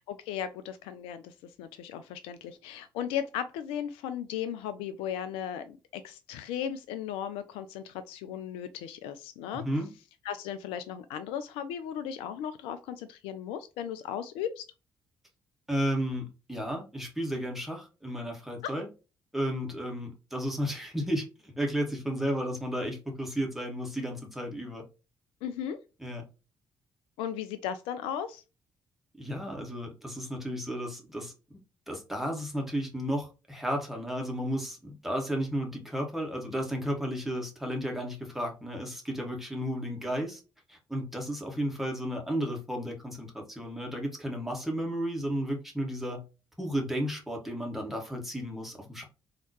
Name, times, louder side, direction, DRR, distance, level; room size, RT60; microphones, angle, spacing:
voice 1, 0.1-9.6 10.2-14.6 18.6-18.7 25.4-25.8 27.2-28.4, left 9 dB, 65° left, 0.4 m, -36 dB
voice 2, 9.5-9.9 15.7-18.9 19.3-24.8 26.0-26.3 29.2-40.4 40.7-46.2 46.6-49.1, equal, 5° right, 1.7 m, -33 dB
4.1 x 2.9 x 3.0 m
figure-of-eight pair, 40°, 10 cm